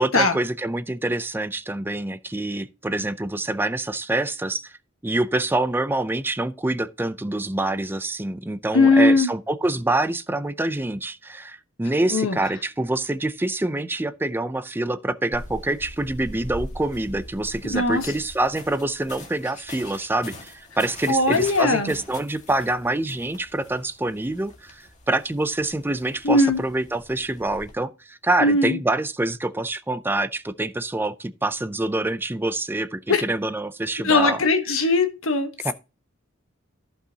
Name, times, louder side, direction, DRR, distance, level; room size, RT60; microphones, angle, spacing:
voice 1, 0.0-4.8 5.0-34.4 35.6-35.7, right 2 dB, 10° right, 0.4 m, -26 dB
voice 2, 8.7-9.3 12.1-12.4 17.7-18.1 21.1-22.0 26.2-26.6 28.4-28.8 33.1-33.2 34.0-35.5, left 2 dB, 90° left, 1.2 m, -19 dB
sound 1, 15.3-27.7, left 1 dB, 35° left, 1.8 m, -42 dB
14.5 x 5.5 x 2.8 m
head